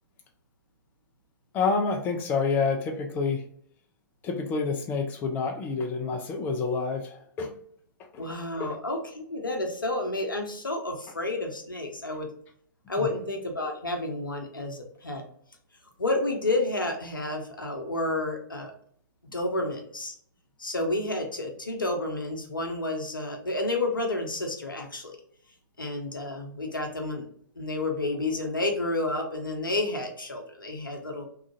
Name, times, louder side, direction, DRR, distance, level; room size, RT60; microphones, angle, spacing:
voice 1, 1.5-3.4 4.2-7.5 8.1-8.3 8.6-8.8 13.0-13.1, left 4 dB, 15° left, 3 dB, 0.3 m, -28 dB
voice 2, 8.2-12.3 12.9-15.2 16.0-18.7 19.3-20.1 20.6-25.2 25.8-27.3 27.6-31.3, left 2 dB, 80° left, 3 dB, 0.7 m, -30 dB
2.8 x 2.4 x 2.5 m, 0.62 s
figure-of-eight pair, 110°, 11 cm